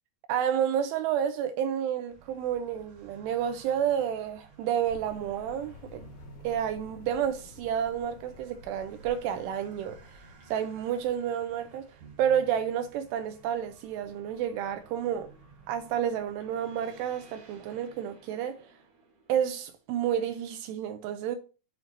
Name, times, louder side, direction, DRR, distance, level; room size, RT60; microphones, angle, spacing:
voice 1, 0.3-6.1 6.4-10.2 10.5-11.9 12.2-15.3 15.7-18.6 19.3-21.4, right 9 dB, 85° right, 2.4 m, -30 dB
sound 1, 2.1-20.0, right 5 dB, 55° right, 2.2 m, -55 dB
sound 2, 4.8-11.6, left 5 dB, 80° left, 3.6 m, -51 dB
7.9 x 4.3 x 2.8 m
omnidirectional pair, 5.2 m